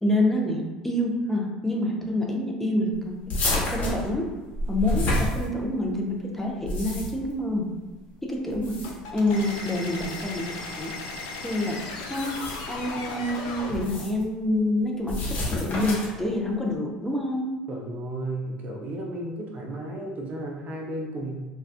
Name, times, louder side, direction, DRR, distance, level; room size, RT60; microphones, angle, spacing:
voice 1, 0.0-4.3 4.7-7.7 8.2-8.8 9.1-10.9 11.4-11.8 12.1-12.4 12.7-17.5, left 1 dB, 10° left, -1 dB, 0.5 m, -27 dB
sound 1, 3.3-5.9 6.5-7.3 8.5-9.1 10.0-10.2 12.0-12.8 13.7-14.2 15.1-16.2, left 1 dB, 45° left, 0.8 m, -29 dB
sound 2, 8.8-13.9, left 3 dB, 70° left, 0.4 m, -36 dB
voice 2, 17.7-21.4, right 1 dB, 45° right, 1 dB, 0.5 m, -33 dB
2.4 x 2.2 x 2.4 m, 1.2 s
hypercardioid pair, 70°, 4 cm